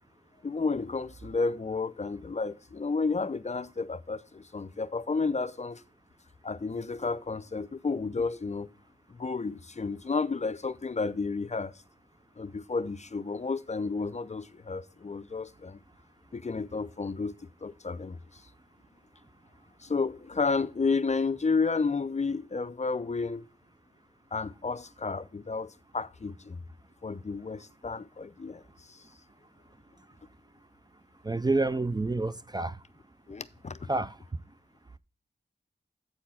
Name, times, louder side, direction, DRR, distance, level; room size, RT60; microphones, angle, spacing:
voice 1, 0.4-5.8 6.4-8.7 9.1-11.7 12.4-15.8 16.3-18.4 19.8-23.5 24.3-26.6 27.0-29.0 33.3-33.8, left 4 dB, 40° left, 0.6 m, -32 dB
voice 2, 31.2-32.8 33.9-34.2, right 2 dB, 20° right, 0.4 m, -28 dB
8.4 x 4.4 x 5.7 m
cardioid pair, 55°, 19 cm